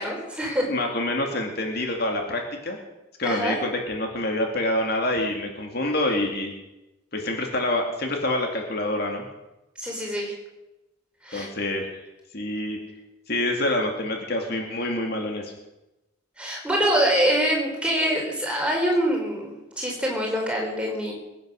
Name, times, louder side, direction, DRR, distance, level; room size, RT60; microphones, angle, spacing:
voice 1, 0.0-0.7 3.2-3.6 9.8-10.3 11.2-11.5 16.4-21.1, equal, 5° right, -1 dB, 4.3 m, -25 dB
voice 2, 0.7-2.8 3.2-6.5 7.1-9.2 11.3-12.1 12.3-12.8 13.3-15.5, left 1 dB, 50° left, 2 dB, 2.3 m, -26 dB
22.0 x 9.5 x 6.4 m, 0.97 s
head